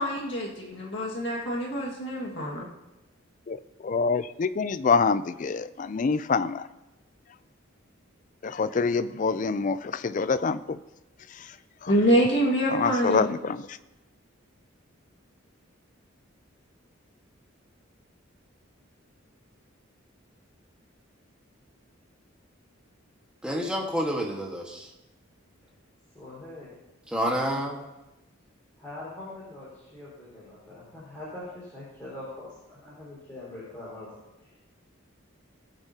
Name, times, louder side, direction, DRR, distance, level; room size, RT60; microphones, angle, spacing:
voice 1, 0.0-2.7 11.9-13.3, equal, 60° left, -3 dB, 1.9 m, -25 dB
voice 2, 3.8-6.6 8.4-10.8 11.8-11.9 12.7-13.6, left 4 dB, 40° left, 14 dB, 0.3 m, -26 dB
voice 3, 23.4-24.9 27.1-27.8, equal, 5° right, -1 dB, 1.4 m, -28 dB
voice 4, 26.1-26.7 28.8-34.1, left 2 dB, 10° left, -10 dB, 4.5 m, -42 dB
20.0 x 8.0 x 2.8 m, 1.0 s
head